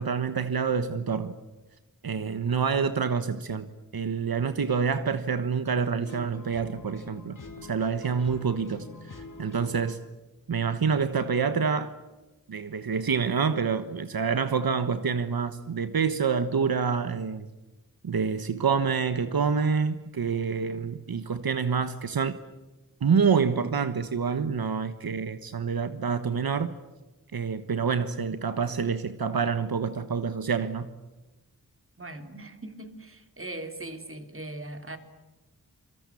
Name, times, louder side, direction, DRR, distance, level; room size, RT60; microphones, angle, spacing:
voice 1, 0.0-1.3 2.0-10.0 10.5-11.9 12.5-17.5 18.0-22.4 23.0-26.7 27.3-30.9, right 6 dB, 80° right, 1.3 m, -27 dB
sound 1, 6.0-10.0, left 3 dB, 60° left, 4.5 m, -45 dB
voice 2, 32.0-35.0, right 2 dB, 35° right, 3.1 m, -40 dB
27.0 x 25.0 x 8.5 m
wide cardioid pair, 90°, 36 cm